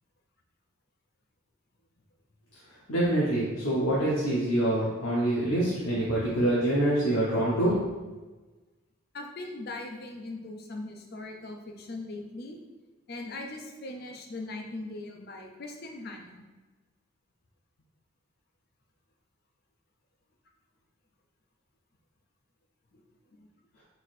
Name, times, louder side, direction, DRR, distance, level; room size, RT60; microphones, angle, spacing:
voice 1, 2.9-7.8, right 1 dB, 90° left, -7 dB, 1.1 m, -25 dB
voice 2, 9.1-12.6 13.1-16.4, left 2 dB, 50° left, 2 dB, 0.6 m, -40 dB
4.6 x 4.1 x 2.6 m, 1.2 s
head